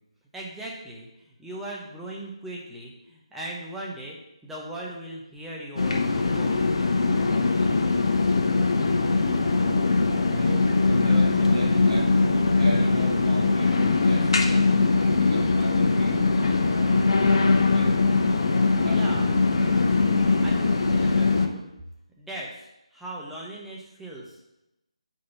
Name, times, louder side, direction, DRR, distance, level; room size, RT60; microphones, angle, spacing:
voice 1, 0.3-1.1 1.4-4.2 4.4-6.0 6.3-6.6 18.8-19.3 20.4-21.7 22.2-22.5 22.9-24.4, right 1 dB, 5° right, -5 dB, 0.8 m, -38 dB
sound 1, 5.8-21.5, left 3 dB, 55° left, 0.8 m, -21 dB
voice 2, 10.3-12.2 12.6-14.4 15.0-16.2 16.7-17.4 17.7-18.0 18.8-19.5, right 1 dB, 60° right, -1 dB, 1.9 m, -35 dB
4.7 x 4.4 x 5.7 m, 0.89 s
figure-of-eight pair, 160°, 3 cm